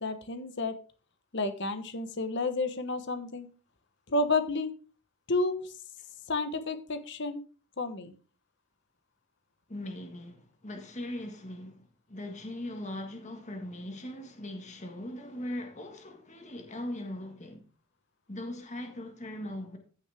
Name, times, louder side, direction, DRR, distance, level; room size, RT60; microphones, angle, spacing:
voice 1, 0.0-0.7 1.3-3.5 4.1-4.7 5.3-5.6 6.3-7.4 7.8-8.1, left 2 dB, 55° left, 1.1 m, -30 dB
voice 2, 9.7-17.6 18.3-19.8, left 1 dB, 35° left, 1.7 m, -40 dB
14.5 x 6.3 x 3.5 m
head